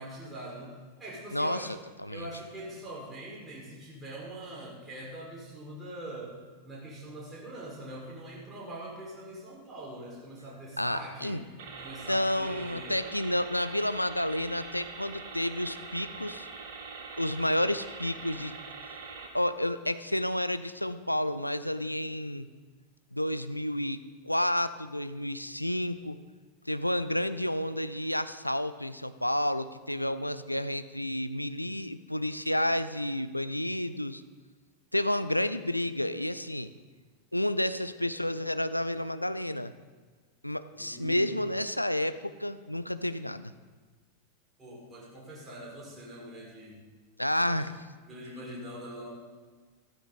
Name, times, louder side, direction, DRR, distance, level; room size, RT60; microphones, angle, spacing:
voice 1, 0.0-1.7 2.1-11.5 11.8-13.2 40.7-41.3 44.6-46.8 47.4-47.6 48.0-49.1, right 1 dB, 15° right, -5 dB, 4.9 m, -43 dB
voice 2, 1.3-2.3 10.8-11.4 12.1-16.5 17.2-18.6 19.3-22.5 23.1-26.2 26.7-34.2 34.9-36.7 37.3-39.7 40.4-43.5 47.2-47.7, left 1 dB, 90° left, 12 dB, 0.5 m, -30 dB
sound 1, 11.6-19.3, right 4 dB, 55° right, 1.8 m, -43 dB
14.0 x 13.5 x 4.1 m, 1.4 s
figure-of-eight pair, 90°, 0 cm